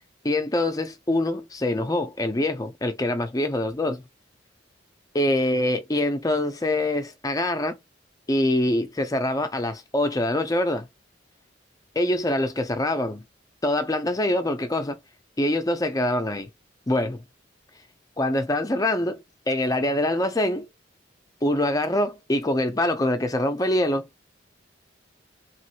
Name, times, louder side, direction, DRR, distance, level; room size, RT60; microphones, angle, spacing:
voice 1, 0.2-4.0 5.1-7.8 8.3-10.9 12.0-13.2 13.6-15.0 15.4-16.5 16.9-17.2 18.2-20.7 21.4-24.1, left 1 dB, 20° left, 0.6 m, -24 dB
3.1 x 2.5 x 2.8 m
head